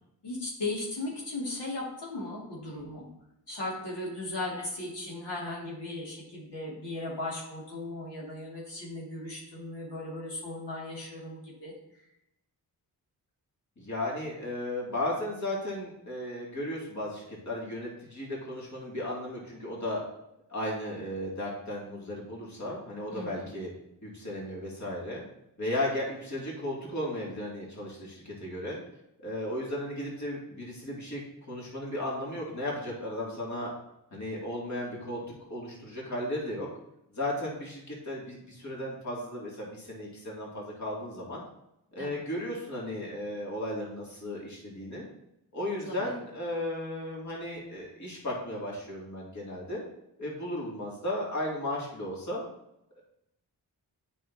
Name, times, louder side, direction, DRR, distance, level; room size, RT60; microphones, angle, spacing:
voice 1, 0.2-3.0 3.5-11.7 23.1-23.5 42.0-42.2 45.9-46.1, left 2 dB, 90° left, -5 dB, 2.4 m, -37 dB
voice 2, 13.8-20.0 20.5-23.7 24.0-25.2 25.6-28.8 29.2-31.2 31.5-33.7 34.1-35.2 35.5-36.7 37.1-41.4 41.9-45.0 45.5-49.8 50.2-52.4, left 1 dB, 45° left, -4 dB, 2.5 m, -35 dB
8.3 x 5.5 x 2.8 m, 0.82 s
cardioid pair, 65°, 40 cm